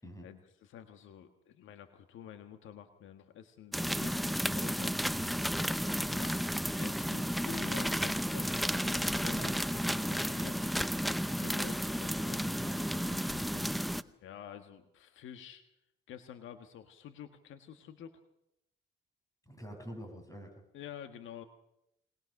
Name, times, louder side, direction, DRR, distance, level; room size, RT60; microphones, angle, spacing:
voice 1, 0.2-4.9 5.9-6.4 6.8-10.7 11.1-12.4 13.2-13.6 14.2-15.6 16.1-18.1 20.7-21.4, left 9 dB, 80° left, 8 dB, 1.6 m, -49 dB
sound 1, 3.7-14.0, equal, ahead, 0.7 m, -32 dB
voice 2, 12.5-13.8 19.5-20.6, equal, 15° left, 4 dB, 6.6 m, -47 dB
22.5 x 20.5 x 6.6 m, 0.81 s
cardioid pair, 90°, 20 cm